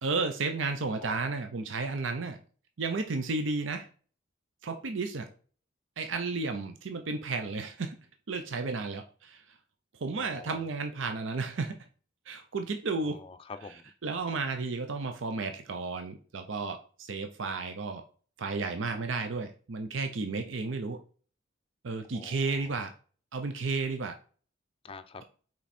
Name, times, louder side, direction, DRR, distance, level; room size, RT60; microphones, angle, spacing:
voice 1, 0.0-2.4 2.8-3.9 4.6-5.3 6.0-8.0 8.3-9.4 9.9-11.8 12.3-13.2 14.0-18.0 18.4-21.0 21.8-22.9 23.3-24.2, right 3 dB, 75° right, 6 dB, 0.6 m, -33 dB
voice 2, 10.1-10.7 13.0-13.9 22.1-22.8 24.8-25.2, left 4 dB, 30° left, 9 dB, 0.5 m, -46 dB
5.9 x 4.5 x 4.2 m, 0.41 s
head